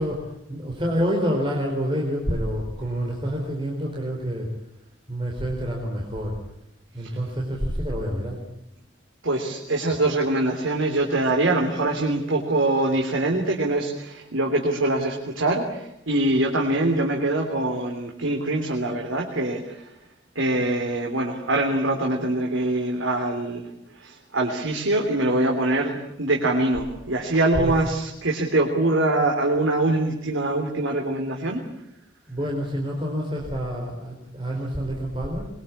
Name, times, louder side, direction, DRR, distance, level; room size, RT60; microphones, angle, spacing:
voice 1, 0.0-4.5 5.1-6.4 6.9-8.4 27.5-27.8 32.3-35.5, equal, 25° right, -1 dB, 4.6 m, -27 dB
voice 2, 9.2-19.8 20.4-23.7 24.0-31.6, right 2 dB, 85° right, 1 dB, 3.4 m, -24 dB
23.0 x 23.0 x 8.6 m, 0.80 s
head